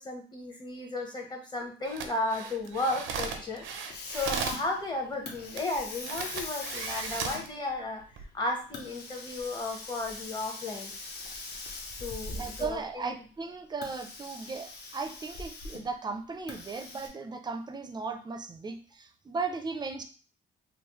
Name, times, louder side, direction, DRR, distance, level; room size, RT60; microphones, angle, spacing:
voice 1, 0.0-8.0 8.3-10.9 12.0-13.1, left 2 dB, 20° left, 1 dB, 0.9 m, -34 dB
sound 1, 1.8-4.6 5.6-5.7 6.0-7.5 8.0-8.2, right 6 dB, 85° right, 0.5 m, -36 dB
Hiss, 2.6-13.0 13.7-16.0 16.5-17.1, left 3 dB, 55° left, 0.7 m, -42 dB
voice 2, 12.3-20.0, right 4 dB, 20° right, 7 dB, 0.4 m, -36 dB
3.1 x 2.0 x 3.0 m, 0.39 s
cardioid pair, 90°, 20 cm